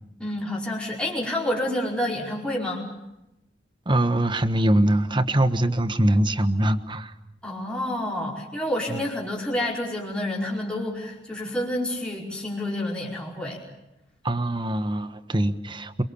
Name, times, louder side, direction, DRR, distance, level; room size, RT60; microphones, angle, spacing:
voice 1, 0.2-2.9 7.4-13.6, left 1 dB, 5° left, -4 dB, 5.1 m, -29 dB
voice 2, 3.9-7.1 8.9-9.0 14.2-16.0, right 1 dB, 25° right, 11 dB, 1.3 m, -23 dB
28.0 x 23.5 x 7.1 m, 0.90 s
head